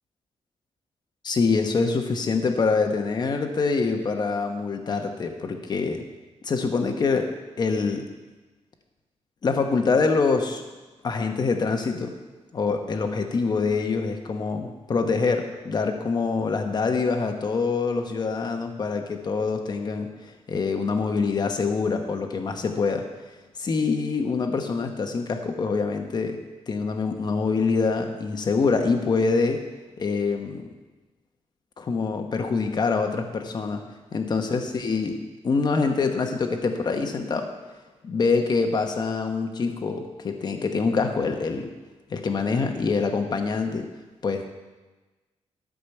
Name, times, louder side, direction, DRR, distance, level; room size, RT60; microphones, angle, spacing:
voice 1, 1.2-6.0 6.4-7.3 7.6-8.0 9.4-10.6 11.0-12.1 12.5-23.0 23.6-29.6 30.0-30.7 31.8-33.8 34.1-35.2 35.4-37.5 38.0-41.7 42.1-43.9 44.2-44.5, left 4 dB, 35° left, 5 dB, 1.1 m, -25 dB
13.0 x 5.1 x 7.1 m, 1.2 s
wide cardioid pair, 170°, 12 cm